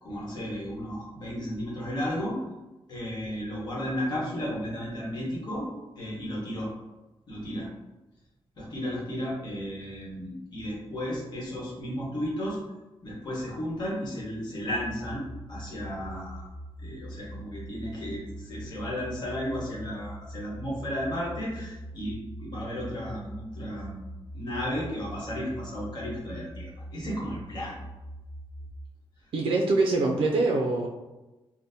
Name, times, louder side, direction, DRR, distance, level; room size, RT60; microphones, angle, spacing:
voice 1, 0.0-2.4 2.9-5.7 5.9-6.7 7.3-7.7 8.6-12.6 13.0-16.5 16.8-24.0 24.3-27.8, equal, 50° left, -5 dB, 1.0 m, -34 dB
sound 1, 14.7-28.7, equal, 15° left, 0.5 m, -43 dB
voice 2, 29.3-30.9, right 3 dB, 70° right, 0 dB, 0.3 m, -24 dB
3.8 x 2.0 x 2.7 m, 1.1 s
wide cardioid pair, 160°, 10 cm